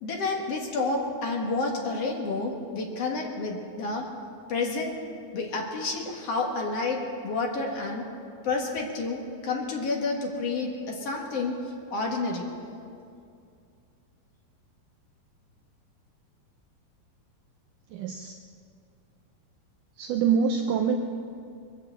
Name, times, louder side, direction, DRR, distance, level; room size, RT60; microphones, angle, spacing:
voice 1, 0.0-4.1 4.5-5.0 5.3-8.0 8.4-11.6 11.9-12.5, left 3 dB, 50° left, 0 dB, 2.1 m, -29 dB
voice 2, 17.9-18.4 20.0-21.0, right 6 dB, 80° right, 4 dB, 1.9 m, -25 dB
21.5 x 8.2 x 8.0 m, 2.4 s
omnidirectional pair, 4.4 m